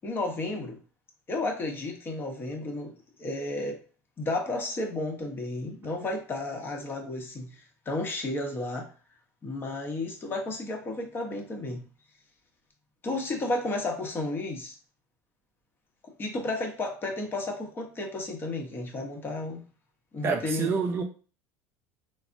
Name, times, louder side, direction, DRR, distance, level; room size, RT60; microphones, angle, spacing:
voice 1, 0.0-0.8 1.3-2.9 3.2-3.8 4.2-8.9 9.4-11.8 13.0-14.8 16.2-19.6 20.1-20.8, left 2 dB, 30° left, 0.8 m, -32 dB
voice 2, 20.2-21.0, right 5 dB, 35° right, 0.4 m, -27 dB
3.3 x 2.0 x 2.5 m
supercardioid pair, 110°, 7 cm